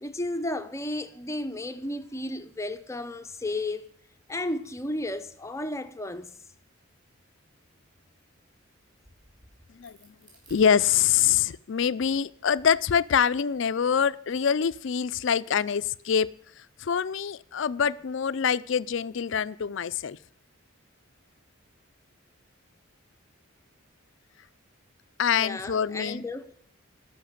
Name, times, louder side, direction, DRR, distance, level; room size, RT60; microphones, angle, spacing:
voice 1, 0.0-3.8 4.3-6.4 25.4-26.6, left 1 dB, 15° left, 0.6 m, -33 dB
Crack, 8.8-11.4 11.9-13.6, right 1 dB, 20° right, 5.2 m, -58 dB
voice 2, 9.7-10.1 10.5-16.3 16.8-20.2 25.2-26.2, left 7 dB, 60° left, 0.4 m, -25 dB
13.5 x 5.8 x 7.9 m
head